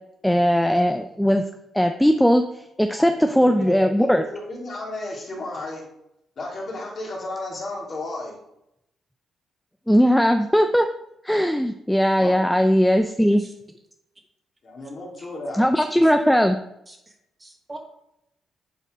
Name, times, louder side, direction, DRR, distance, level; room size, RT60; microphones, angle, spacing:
voice 1, 0.2-1.4 1.7-2.4 2.8-4.2 9.9-10.9 11.2-13.4 15.6-16.6, equal, 5° left, 6 dB, 0.5 m, -19 dB
voice 2, 3.0-5.9 6.4-8.4 12.1-12.6 14.6-16.1, left 2 dB, 55° left, -3 dB, 2.5 m, -34 dB
voice 3, 16.9-17.8, right 2 dB, 20° right, 1 dB, 1.9 m, -44 dB
8.1 x 4.4 x 3.7 m, 0.81 s
cardioid pair, 70°, 0 cm